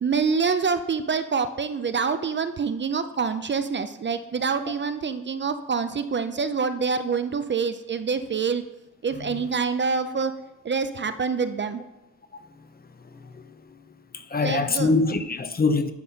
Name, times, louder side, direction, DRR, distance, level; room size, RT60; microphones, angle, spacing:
voice 1, 0.0-8.6 9.0-10.3 10.6-11.8 14.4-14.9, right 5 dB, 40° right, 0.4 m, -26 dB
voice 2, 14.1-15.9, left 3 dB, 30° left, 0.6 m, -23 dB
9.8 x 4.0 x 5.7 m
wide cardioid pair, 120°, 30 cm